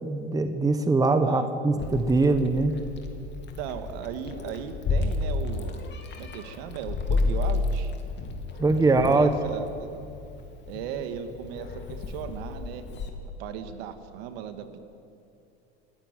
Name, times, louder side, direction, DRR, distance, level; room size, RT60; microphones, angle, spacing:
voice 1, 0.0-2.7 8.6-9.3, right 3 dB, 10° right, 8 dB, 1.3 m, -22 dB
Meow, 1.8-13.1, left 3 dB, 35° left, 2.9 m, -31 dB
voice 2, 3.6-5.8 6.2-7.9 9.0-9.9 10.7-12.8 13.4-14.8, right 8 dB, 65° right, 8 dB, 2.1 m, -37 dB
28.0 x 11.5 x 9.3 m, 2.7 s
hypercardioid pair, 105°, 33 cm